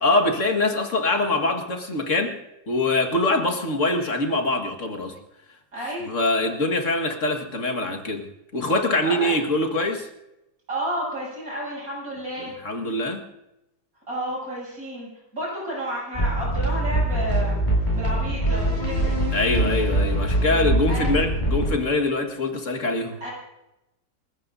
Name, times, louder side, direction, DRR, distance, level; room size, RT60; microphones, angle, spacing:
voice 1, 0.0-2.4 2.7-5.2 6.1-8.3 8.5-10.1 12.6-13.2 19.3-23.2, left 2 dB, 45° left, 4 dB, 2.0 m, -23 dB
voice 2, 5.7-6.1 9.0-9.3 10.7-12.5 14.1-17.7 17.9-19.1 20.9-21.3 23.2-23.3, right 1 dB, 50° right, -5 dB, 8.2 m, -31 dB
sound 1, 16.1-21.7, right 1 dB, 25° left, 8.2 m, -23 dB
29.0 x 14.5 x 2.7 m, 0.92 s
omnidirectional pair, 1.9 m